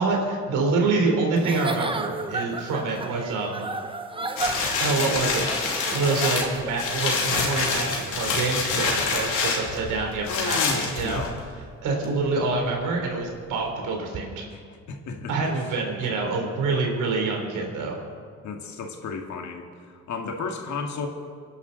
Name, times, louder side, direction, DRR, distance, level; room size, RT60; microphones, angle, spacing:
voice 1, 0.0-3.7 4.8-11.2 11.8-14.5 15.3-18.0, right 3 dB, 90° right, 1 dB, 3.5 m, -26 dB
Giggle / Chuckle chortle, 1.4-6.9, right 3 dB, 15° right, 1.0 m, -33 dB
sound 1, 4.4-11.5 12.0-12.1, left 4 dB, 85° left, 3.0 m, -26 dB
voice 2, 10.2-11.4 14.5-14.6 14.9-15.4 18.4-21.1, left 5 dB, 70° left, 3 dB, 2.1 m, -33 dB
25.5 x 11.0 x 4.0 m, 2.1 s
cardioid pair, 90°, 30 cm